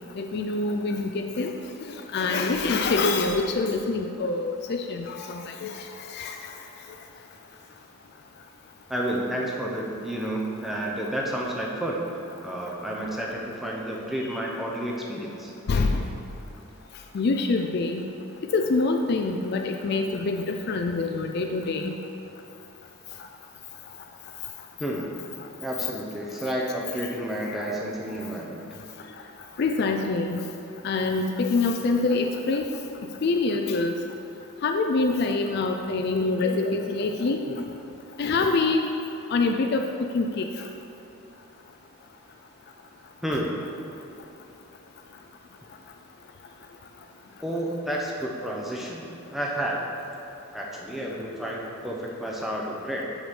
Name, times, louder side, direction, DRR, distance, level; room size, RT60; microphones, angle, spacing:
voice 1, 0.2-1.5 2.1-6.4 14.3-14.4 15.7-16.0 17.1-18.0 18.5-21.9 27.5-27.6 29.6-30.4 30.8-32.7 33.2-34.0 34.6-37.6 38.2-38.9 39.3-39.8 40.1-40.5, left 3 dB, 45° left, 4 dB, 0.4 m, -25 dB
voice 2, 8.9-12.0 12.4-15.5 24.8-25.1 25.6-28.6 43.2-43.6 47.4-49.0 49.3-49.8 50.5-53.0, right 1 dB, ahead, -3 dB, 0.8 m, -30 dB
6.4 x 6.1 x 5.2 m, 2.7 s
head